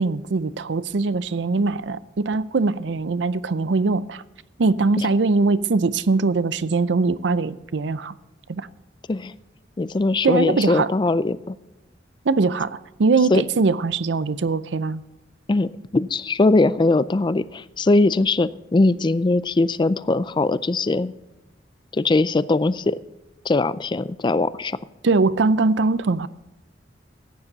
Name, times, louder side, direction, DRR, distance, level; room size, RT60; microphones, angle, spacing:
voice 1, 0.0-4.2 4.6-8.1 8.5-8.7 10.2-10.9 12.2-15.0 25.0-26.3, right 3 dB, 80° right, 0.5 m, -21 dB
voice 2, 9.8-11.6 13.3-13.4 15.5-21.1 21.9-23.0 23.5-24.8, left 2 dB, 25° left, 0.4 m, -20 dB
15.0 x 9.7 x 4.0 m
head